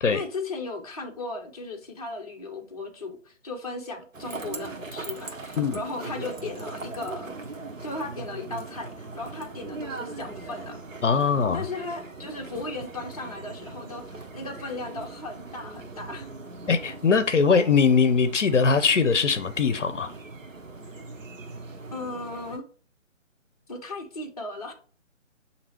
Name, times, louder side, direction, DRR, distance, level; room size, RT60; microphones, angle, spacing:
voice 1, 0.1-7.3 7.8-10.8 11.5-16.3 21.9-22.7 23.7-24.7, left 2 dB, 30° left, 0.6 m, -36 dB
sound 1, 4.1-22.6, right 3 dB, 85° right, 0.9 m, -40 dB
voice 2, 11.0-11.6 16.7-20.1, left 5 dB, 65° left, 0.6 m, -21 dB
6.6 x 2.8 x 2.9 m
figure-of-eight pair, 150°, 38 cm